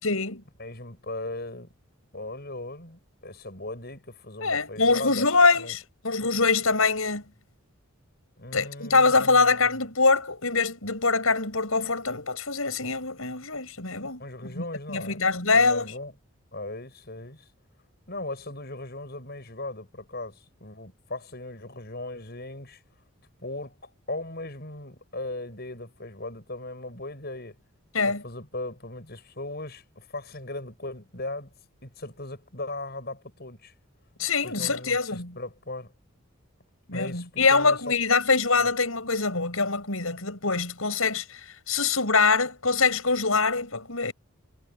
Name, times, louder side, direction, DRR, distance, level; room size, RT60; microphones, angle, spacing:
voice 1, 0.0-0.4 4.4-7.2 8.5-14.2 14.5-15.9 27.9-28.2 34.2-35.3 36.9-44.1, left 4 dB, 75° left, 7.0 m, -24 dB
voice 2, 0.6-1.7 2.1-5.3 5.6-5.8 8.4-9.5 14.2-16.1 16.5-17.5 18.1-22.8 23.4-27.6 28.0-31.5 31.8-33.7 34.4-35.9 36.9-37.8 38.6-38.7, left 2 dB, 45° left, 7.3 m, -38 dB
head